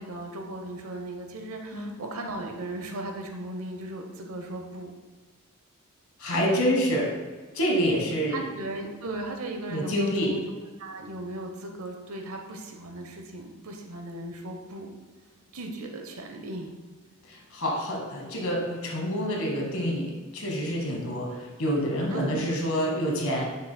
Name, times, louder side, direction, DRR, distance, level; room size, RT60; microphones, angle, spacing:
voice 1, 0.0-4.9 8.3-10.5 10.8-14.9 15.5-16.7 22.1-22.7, right 2 dB, 70° right, 3 dB, 0.9 m, -37 dB
voice 2, 6.2-7.1 7.5-8.4 9.7-10.3 17.3-23.4, equal, 70° left, -1 dB, 1.6 m, -27 dB
9.5 x 6.2 x 2.3 m, 1.4 s
head